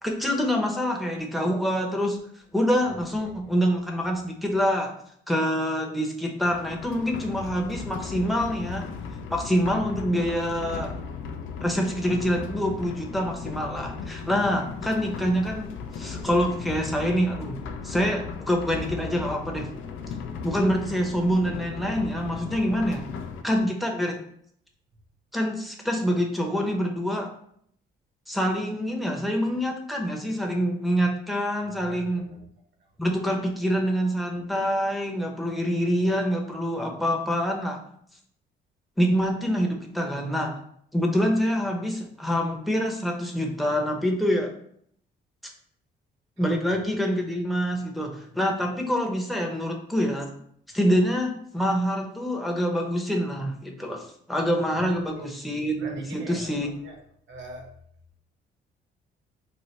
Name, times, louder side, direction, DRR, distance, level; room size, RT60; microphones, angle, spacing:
voice 1, 0.0-2.2 2.5-4.9 5.3-8.9 9.3-10.9 11.6-17.6 17.8-19.7 20.4-23.0 23.4-24.2 25.3-27.3 28.3-32.2 33.0-37.8 39.0-40.5 40.9-44.5 46.4-50.3 50.7-56.7, equal, ahead, 0 dB, 0.7 m, -26 dB
voice 2, 3.2-3.6 19.9-20.2 23.5-23.7 31.8-32.4 32.8-32.9 46.4-46.8 54.7-54.9 55.1-55.3 55.8-57.0 57.3-57.7, right 2 dB, 65° right, 2 dB, 0.9 m, -44 dB
sound 1, 6.4-23.4, left 5 dB, 80° left, 0.4 m, -36 dB
3.2 x 2.1 x 4.1 m, 0.66 s
cardioid pair, 90°, 20 cm